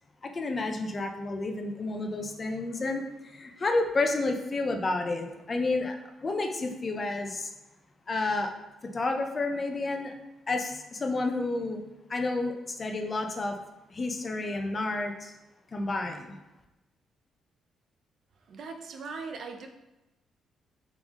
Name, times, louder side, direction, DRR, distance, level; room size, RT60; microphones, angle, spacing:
voice 1, 0.2-7.5 8.1-8.5 8.9-10.1 10.5-11.8 12.1-13.6 13.9-15.3 15.7-16.3, left 2 dB, 35° left, 4 dB, 0.6 m, -30 dB
voice 2, 18.5-19.7, right 4 dB, 60° right, 5 dB, 0.5 m, -39 dB
3.7 x 3.5 x 3.6 m, 0.99 s
cardioid pair, 90°, 0 cm